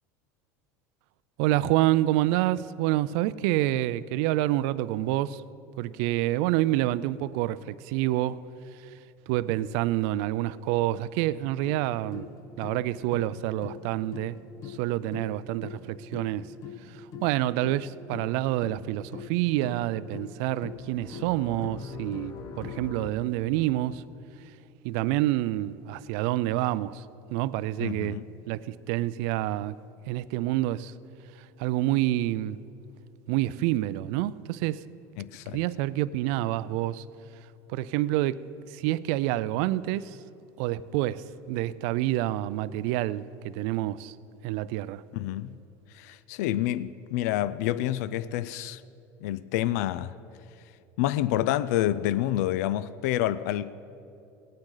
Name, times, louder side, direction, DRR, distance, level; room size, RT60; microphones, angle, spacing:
voice 1, 1.4-5.4 5.8-8.4 9.3-12.3 12.6-14.4 14.7-16.5 16.9-24.0 24.8-27.0 27.3-28.2 28.5-29.8 30.1-30.9 31.6-32.6 33.3-34.8 35.5-37.0 37.7-38.4 38.7-40.2 40.6-44.1 44.4-45.0, right 15 dB, 70° right, 0.4 m, -27 dB
sound 1, 11.6-23.1, left 6 dB, 45° left, 0.9 m, -42 dB
voice 2, 27.8-28.2 35.2-35.6 45.1-45.6 45.9-48.8 49.2-50.2 51.0-53.7, left 13 dB, 80° left, 0.4 m, -28 dB
18.5 x 9.0 x 3.9 m
supercardioid pair, 130°, 9 cm